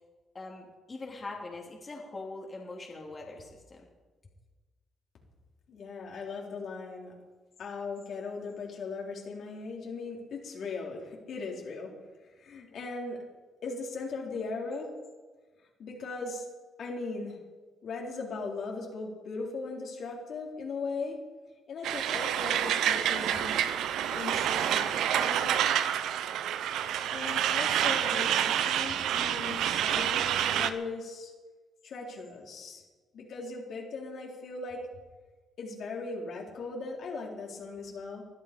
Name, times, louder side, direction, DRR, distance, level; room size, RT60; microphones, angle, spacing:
voice 1, 0.3-3.9, left 2 dB, 30° left, -1 dB, 3.2 m, -42 dB
voice 2, 5.7-7.1 7.6-11.9 12.2-13.2 13.6-14.9 15.8-16.5 16.8-17.4 17.8-21.2 21.7-23.6 24.1-25.6 27.1-31.3 31.8-32.8 33.1-34.9 35.6-38.2, left 3 dB, 65° left, -1 dB, 3.8 m, -38 dB
Truck, 21.8-30.7, right 10 dB, 85° right, 0.9 m, -28 dB
21.0 x 12.0 x 5.3 m, 1.3 s
cardioid pair, 90°, 0 cm